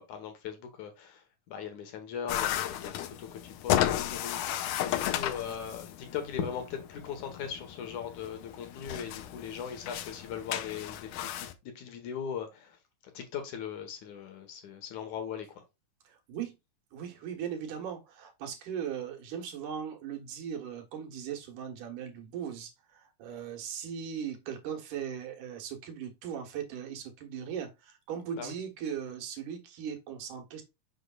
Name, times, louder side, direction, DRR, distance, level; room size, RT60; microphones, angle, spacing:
voice 1, 0.0-12.8 13.1-15.6 28.4-28.5, left 8 dB, 70° left, 2.7 m, -39 dB
sound 1, 2.3-11.5, left 12 dB, 90° left, 2.3 m, -34 dB
voice 2, 16.0-16.5 16.9-30.6, right 8 dB, 75° right, 2.9 m, -38 dB
6.6 x 6.2 x 2.4 m
omnidirectional pair, 3.7 m